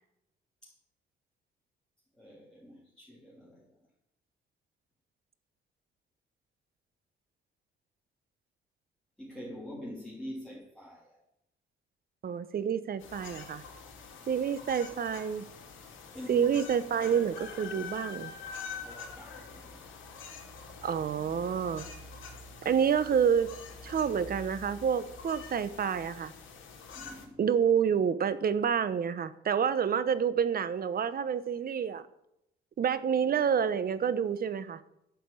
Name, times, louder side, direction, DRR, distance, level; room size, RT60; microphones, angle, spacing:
voice 1, 2.2-3.8 9.2-11.2 16.1-16.7 18.8-19.8 26.9-27.5, left 1 dB, 5° left, -6 dB, 3.2 m, -45 dB
voice 2, 12.2-13.6 14.3-15.4 16.3-18.3 20.8-21.8 22.6-23.6 23.8-26.3 27.4-32.1 32.8-34.8, right 7 dB, 50° right, 14 dB, 1.0 m, -28 dB
sound 1, 13.0-27.3, left 5 dB, 80° left, 3.0 m, -46 dB
11.5 x 5.9 x 8.4 m, 0.80 s
cardioid pair, 90°, 20 cm